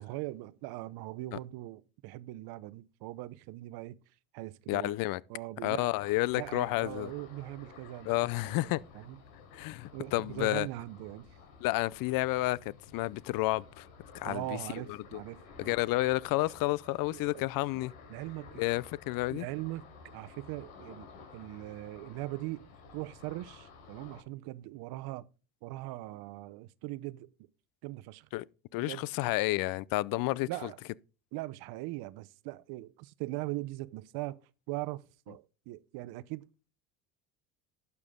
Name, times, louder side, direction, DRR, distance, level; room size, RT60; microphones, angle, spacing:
voice 1, 0.0-4.0 4.3-4.9 5.3-5.9 6.3-9.2 9.9-11.4 14.2-15.8 16.4-16.5 17.1-17.4 18.1-18.6 19.3-21.1 21.3-22.7 22.9-25.3 25.6-27.3 27.8-28.3 28.8-29.1 30.5-30.8 31.3-34.4 34.7-36.5, right 18 dB, 60° right, 0.8 m, -40 dB
voice 2, 4.7-5.2 5.6-7.1 8.1-8.8 9.5-10.7 11.6-13.9 14.1-14.4 14.9-15.2 15.6-17.9 18.6-19.5 28.3-28.4 28.7-30.5, left 19 dB, 55° left, 0.6 m, -30 dB
Ocean, 6.0-24.2, left 4 dB, 85° left, 4.2 m, -54 dB
12.0 x 8.4 x 3.7 m
supercardioid pair, 90°, 42 cm